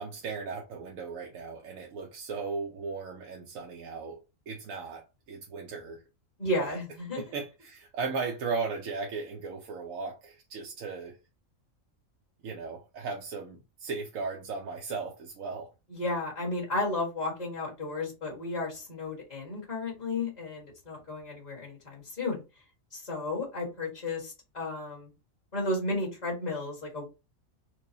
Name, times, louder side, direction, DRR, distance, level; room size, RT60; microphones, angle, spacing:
voice 1, 0.0-4.2 4.5-6.0 6.6-6.8 7.1-11.2 12.4-15.7, right 4 dB, 80° right, 1.1 m, -36 dB
voice 2, 6.4-7.3 15.9-22.4 22.9-25.1 25.5-27.1, left 2 dB, 30° left, 1.6 m, -33 dB
4.5 x 2.2 x 2.7 m
omnidirectional pair, 1.4 m